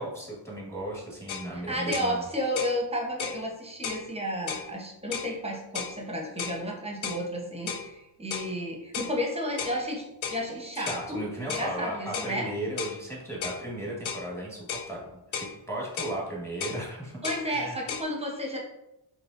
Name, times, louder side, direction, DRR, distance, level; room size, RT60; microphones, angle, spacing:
voice 1, 0.0-2.2 10.7-17.2 17.5-17.8, right 1 dB, 5° left, -4 dB, 1.4 m, -36 dB
sound 1, 1.3-1.5 1.9-2.1 2.6-2.8 3.2-3.4 3.8-4.0 4.5-4.7 5.1-5.3 5.7-6.0 6.4-6.6 7.0-7.2 7.7-7.9 8.3-8.5 8.9-9.2 9.6-9.8 10.2-10.4 10.9-11.1 11.5-11.7 12.1-12.3 12.8-13.0 13.4-13.6 14.1-14.3 14.7-14.9 15.3-15.5 16.0-16.2 16.6-16.8 17.2-17.5 17.9-18.0, left 7 dB, 80° left, 0.6 m, -34 dB
voice 2, 1.5-11.2 11.5-12.5 17.2-18.6, equal, 15° right, 0 dB, 0.9 m, -32 dB
4.7 x 3.3 x 2.5 m, 0.88 s
cardioid pair, 110°, 46 cm